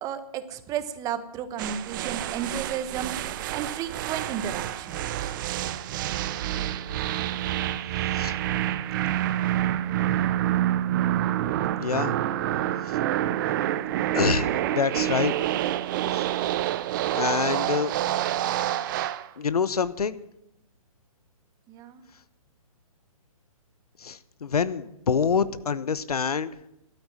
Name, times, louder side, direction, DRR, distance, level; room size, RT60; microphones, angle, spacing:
voice 1, 0.0-5.1 21.7-22.0, right 8 dB, 20° right, 12 dB, 1.0 m, -33 dB
sound 1, 1.6-19.3, right 12 dB, 35° right, 0.7 m, -27 dB
voice 2, 11.8-12.2 12.8-13.0 14.1-15.3 16.1-16.2 17.1-17.9 19.4-20.2 24.0-26.5, left 6 dB, 85° left, 16 dB, 1.0 m, -26 dB
12.5 x 8.9 x 9.9 m, 0.82 s
hypercardioid pair, 145°, 19 cm